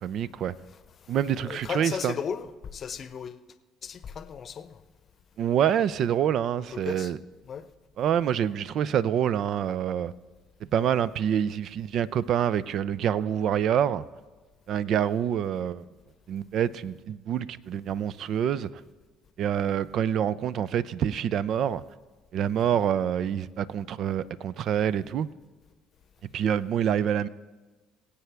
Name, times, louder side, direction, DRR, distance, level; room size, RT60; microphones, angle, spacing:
voice 1, 0.0-0.5 1.1-2.1 5.4-7.2 8.0-10.1 10.7-14.0 14.7-15.9 16.3-18.7 19.4-21.8 22.3-25.3 26.3-27.3, right 9 dB, 60° right, 0.4 m, -26 dB
voice 2, 1.4-3.4 3.8-4.8 6.7-7.1 7.4-7.7 22.6-22.8, left 7 dB, 45° left, 0.7 m, -36 dB
22.5 x 8.3 x 3.4 m
hypercardioid pair, 55°, 0 cm